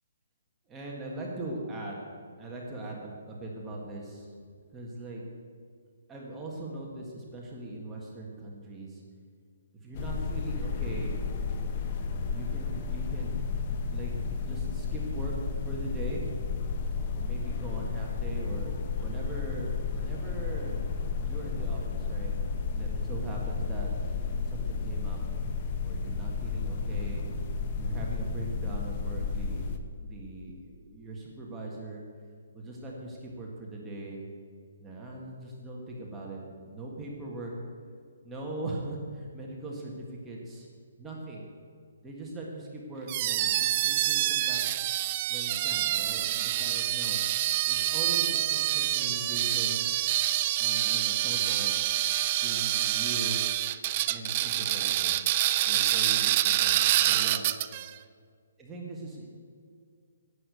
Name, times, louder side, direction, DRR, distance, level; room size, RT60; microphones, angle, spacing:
voice 1, 0.7-2.0 2.4-4.3 4.7-5.2 6.1-9.0 9.8-11.2 12.3-13.3 13.9-14.1 14.4-15.3 15.6-16.2 17.1-20.8 21.2-22.3 22.7-23.9 24.5-25.2 25.8-27.3 27.8-32.0 32.5-34.3 34.8-37.5 38.2-40.7 41.0-41.5 42.0-44.6 45.3-47.2 47.7-49.9 50.6-51.8 52.4-53.4 54.1-55.2 55.6-57.5 58.6-59.3, right 2 dB, 10° right, -3 dB, 1.6 m, -40 dB
sound 1, 9.9-29.8, left 4 dB, 30° left, 0.9 m, -32 dB
sound 2, 43.1-57.9, right 14 dB, 25° right, 0.4 m, -27 dB
11.0 x 8.6 x 8.4 m, 2.1 s
hypercardioid pair, 170°, 0 cm